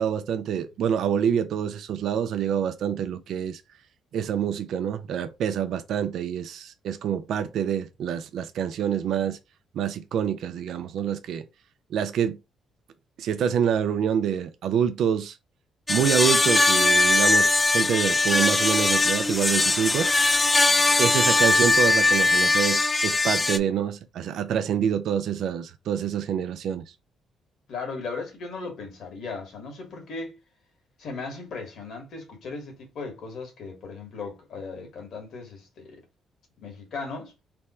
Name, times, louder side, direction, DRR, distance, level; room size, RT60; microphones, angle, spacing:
voice 1, 0.0-3.6 4.1-9.4 9.7-11.4 11.9-12.4 13.2-15.4 15.9-20.1 21.0-26.8, right 8 dB, 75° right, 0.4 m, -26 dB
sound 1, 15.9-23.6, left 2 dB, 20° left, 0.3 m, -21 dB
voice 2, 27.7-30.4 31.0-36.0 36.6-37.3, left 4 dB, 70° left, 1.7 m, -37 dB
3.4 x 2.0 x 4.3 m
cardioid pair, 90°, 0 cm